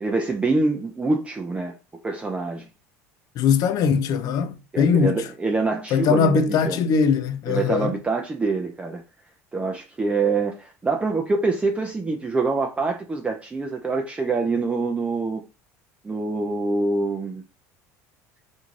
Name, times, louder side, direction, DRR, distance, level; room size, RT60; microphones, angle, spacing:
voice 1, 0.0-1.7 2.0-2.7 4.7-6.8 7.5-9.0 9.5-15.4 16.0-17.4, right 3 dB, 15° right, 0.4 m, -25 dB
voice 2, 3.4-5.2 5.9-7.9, left 6 dB, 55° left, 0.4 m, -21 dB
2.6 x 2.3 x 3.0 m
supercardioid pair, 90°, 8 cm